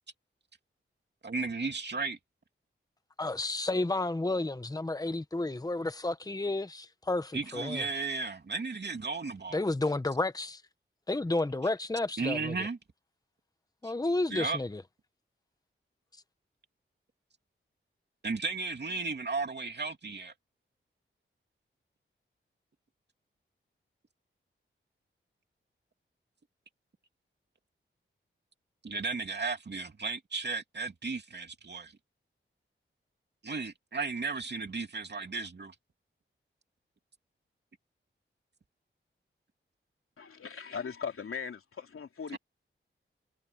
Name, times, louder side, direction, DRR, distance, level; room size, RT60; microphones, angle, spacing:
voice 1, 1.2-2.2 7.3-9.6 12.2-12.8 13.8-13.9 14.3-14.6 18.2-20.3 28.8-31.9 33.4-35.7 42.3-42.4, right 4 dB, 55° right, 2.8 m, -34 dB
voice 2, 3.2-7.8 9.5-10.6 11.1-12.7 13.8-14.8, left 2 dB, 15° left, 1.1 m, -31 dB
voice 3, 40.2-42.4, left 6 dB, 85° left, 3.2 m, -39 dB
wide cardioid pair, 80°, 21 cm